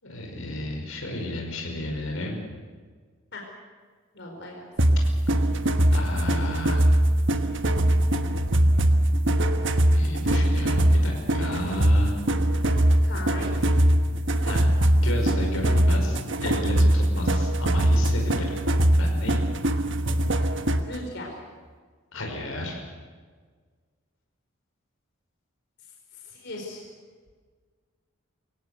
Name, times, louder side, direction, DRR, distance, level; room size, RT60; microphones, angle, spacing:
voice 1, 0.0-2.4 5.9-6.9 9.9-12.2 14.5-14.7 14.9-18.7 19.0-19.4 22.1-22.9, left 1 dB, 80° left, 1 dB, 5.3 m, -32 dB
voice 2, 4.1-4.7 13.0-13.7 20.9-21.4 26.1-26.9, left 2 dB, 55° left, 0 dB, 4.6 m, -38 dB
sound 1, 4.8-21.0, right 1 dB, 60° right, 1.4 m, -22 dB
24.5 x 17.5 x 8.1 m, 1.5 s
head